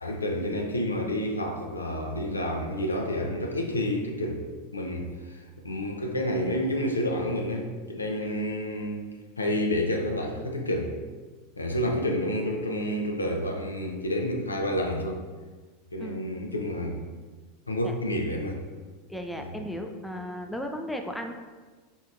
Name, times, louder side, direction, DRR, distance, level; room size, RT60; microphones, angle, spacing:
voice 1, 0.0-4.4 4.7-9.1 9.4-10.9 11.6-15.2 15.9-17.0 17.7-18.6 19.4-19.5, left 1 dB, 85° left, 2 dB, 0.5 m, -29 dB
voice 2, 19.1-21.3, equal, 5° left, 4 dB, 0.4 m, -35 dB
4.4 x 3.5 x 2.5 m, 1.4 s
figure-of-eight pair, 85°, 0 cm